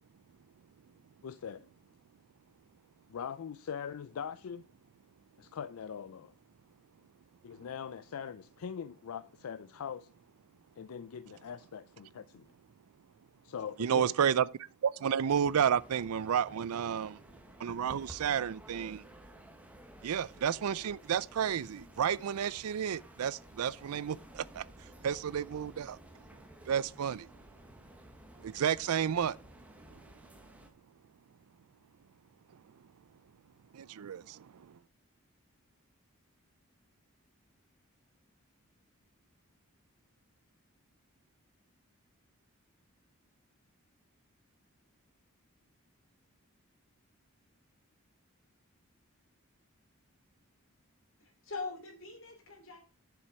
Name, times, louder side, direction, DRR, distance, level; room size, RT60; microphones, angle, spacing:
voice 1, 1.2-1.7 3.1-4.6 5.4-6.3 7.4-10.1 10.8-12.4 13.4-14.1, left 7 dB, 80° left, 0.4 m, -42 dB
voice 2, 13.8-14.5 14.8-17.2 17.6-19.0 20.0-26.0 26.7-27.3 28.4-29.4 33.7-34.8, right 8 dB, 85° right, 0.4 m, -31 dB
sound 1, 15.3-30.7, equal, 5° right, 1.1 m, -54 dB
voice 3, 51.2-52.8, left 3 dB, 65° left, 2.9 m, -42 dB
7.5 x 6.9 x 4.7 m
head